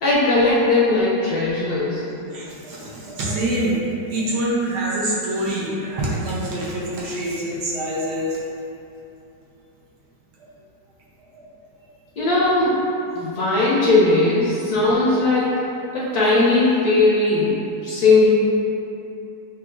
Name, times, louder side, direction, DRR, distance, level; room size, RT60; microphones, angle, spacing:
voice 1, 0.0-2.0 12.2-12.8 13.1-15.6 15.9-18.3, left 2 dB, 65° left, -7 dB, 1.0 m, -18 dB
voice 2, 2.3-3.8 4.1-8.3 11.3-11.5 12.2-12.3 17.3-17.4, right 1 dB, 70° right, -6 dB, 1.2 m, -25 dB
5.9 x 2.4 x 2.5 m, 2.7 s
omnidirectional pair, 2.0 m